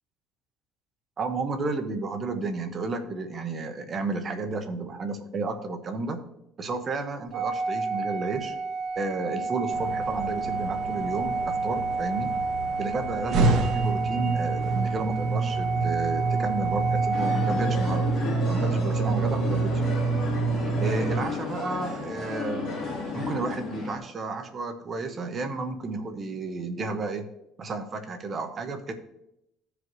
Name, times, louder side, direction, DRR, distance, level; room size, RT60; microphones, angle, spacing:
voice 1, 1.2-6.2 6.6-8.5 9.0-12.3 12.8-18.1 18.5-19.8 20.8-22.7 23.1-27.3 27.6-28.9, right 3 dB, 30° right, 7 dB, 0.9 m, -32 dB
Organ, 7.3-18.2, right 4 dB, 85° right, 1.9 m, -30 dB
sound 1, 9.7-21.2, right 4 dB, 50° right, 1.3 m, -28 dB
sound 2, 17.1-24.0, left 4 dB, 35° left, 2.9 m, -33 dB
15.0 x 5.0 x 3.1 m, 0.81 s
cardioid pair, 145°, 0 cm